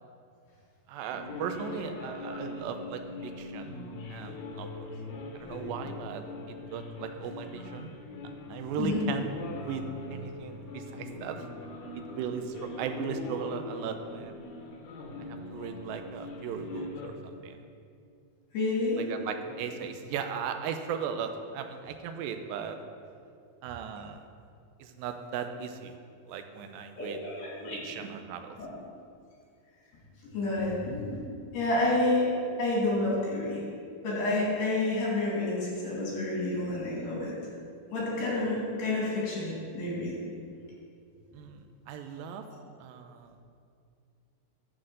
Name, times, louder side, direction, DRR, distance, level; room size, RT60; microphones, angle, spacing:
voice 1, 0.9-3.8 4.1-4.9 5.4-7.9 8.5-9.3 9.6-9.8 10.1-11.5 12.0-14.4 15.5-17.6 19.0-22.8 23.6-24.2 24.8-25.9 26.3-27.2 27.8-28.6 41.3-42.4 42.8-43.4, right 7 dB, 80° right, 6 dB, 2.3 m, -37 dB
sound 1, 1.1-17.1, left 2 dB, 65° left, 2.2 m, -41 dB
voice 2, 18.5-19.0 27.0-27.8 28.6-28.7 30.3-32.3 32.6-33.6 34.0-37.3 37.9-40.1, left 2 dB, 85° left, -6 dB, 4.7 m, -29 dB
12.0 x 4.0 x 7.6 m, 2.4 s
omnidirectional pair, 4.4 m